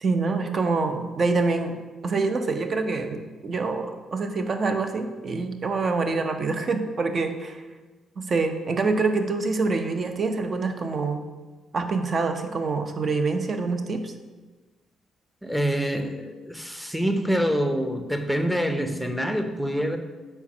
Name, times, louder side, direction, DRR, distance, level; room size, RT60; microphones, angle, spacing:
voice 1, 0.0-7.6 8.2-11.2 11.7-14.1, right 3 dB, 45° right, 7 dB, 0.7 m, -26 dB
voice 2, 15.4-20.0, equal, ahead, 6 dB, 0.7 m, -26 dB
4.5 x 4.4 x 5.8 m, 1.3 s
cardioid pair, 90°, 0 cm